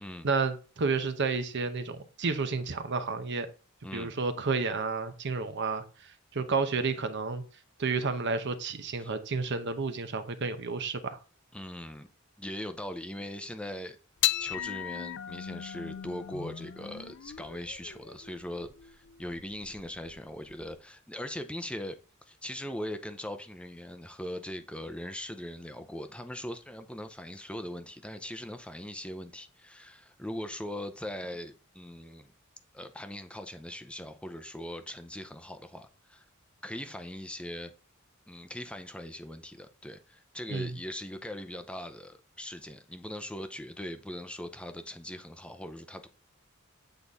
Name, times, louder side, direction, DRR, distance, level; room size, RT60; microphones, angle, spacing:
voice 1, 0.2-3.5 3.9-5.8 6.3-7.4 7.8-11.2 40.5-40.7, right 4 dB, 55° right, 0.8 m, -31 dB
voice 2, 3.8-4.2 9.0-9.1 11.5-12.1 12.4-14.0 14.4-22.0 22.3-32.3 32.7-36.3 36.6-37.7 38.3-46.1, left 1 dB, 5° left, 0.5 m, -40 dB
sound 1, 14.2-20.8, left 11 dB, 60° left, 0.5 m, -36 dB
8.0 x 4.0 x 3.5 m
head